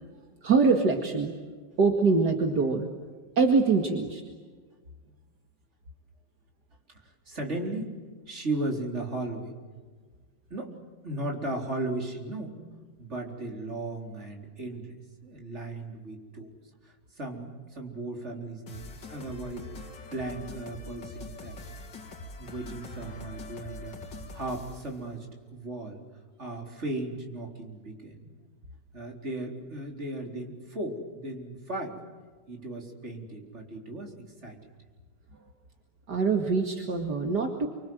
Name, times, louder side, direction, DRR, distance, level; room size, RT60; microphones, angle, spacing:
voice 1, 0.4-1.3 1.8-2.9 3.4-4.2 36.1-37.7, right 4 dB, 65° right, 4 dB, 2.6 m, -24 dB
voice 2, 7.0-7.9 8.3-9.5 10.5-10.7 11.0-12.6 13.0-14.9 15.2-16.5 16.8-21.6 22.4-26.0 26.4-28.3 28.9-32.0 32.5-34.1 34.4-34.6, right 2 dB, 40° right, 2 dB, 4.4 m, -36 dB
sound 1, 18.7-25.0, left 2 dB, 80° left, 3.1 m, -43 dB
28.5 x 25.0 x 7.9 m, 1.5 s
omnidirectional pair, 1.9 m